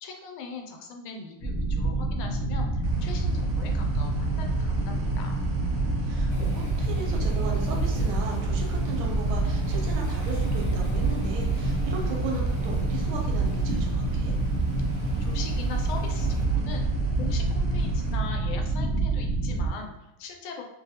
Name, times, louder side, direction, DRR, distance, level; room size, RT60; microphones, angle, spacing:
voice 1, 0.0-5.4 15.2-16.9 17.1-20.6, left 4 dB, 85° left, 2 dB, 1.4 m, -40 dB
sound 1, 1.4-19.7, right 2 dB, 30° left, 0.8 m, -27 dB
sound 2, 2.8-18.2, right 4 dB, 75° right, 1.1 m, -41 dB
voice 2, 6.0-14.3, right 4 dB, 90° right, 1 dB, 1.5 m, -36 dB
Waves surf, 6.3-16.4, equal, 60° left, 0.5 m, -47 dB
3.0 x 2.6 x 2.7 m, 0.98 s
omnidirectional pair, 2.2 m